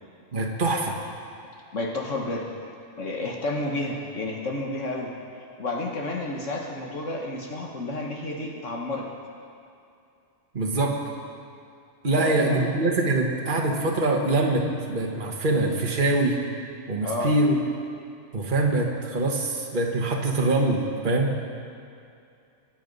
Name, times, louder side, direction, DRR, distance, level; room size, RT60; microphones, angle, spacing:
voice 1, 0.3-1.0 10.5-11.0 12.0-16.4 16.9-17.6 18.3-21.3, right 2 dB, 40° right, 0 dB, 1.6 m, -24 dB
voice 2, 1.7-2.4 3.0-9.1 12.2-12.6 17.0-17.3, left 2 dB, 70° left, 0 dB, 1.7 m, -31 dB
23.5 x 9.2 x 5.4 m, 2.5 s
omnidirectional pair, 1.3 m